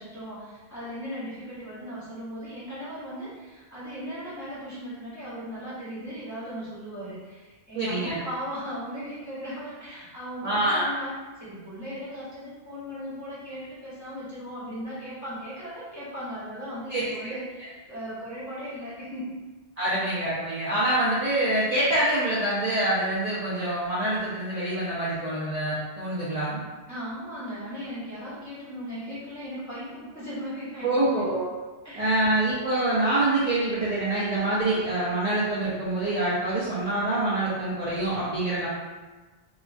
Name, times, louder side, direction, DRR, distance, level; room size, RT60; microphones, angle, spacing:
voice 1, 0.0-19.4 19.9-20.1 26.9-31.3 31.8-32.2, equal, 15° left, -11 dB, 0.9 m, -37 dB
voice 2, 7.7-8.2 10.4-10.9 16.9-17.3 19.8-26.6 30.8-31.5 32.0-38.7, right 1 dB, 45° right, -10 dB, 0.6 m, -26 dB
2.9 x 2.4 x 2.4 m, 1.2 s
omnidirectional pair, 1.1 m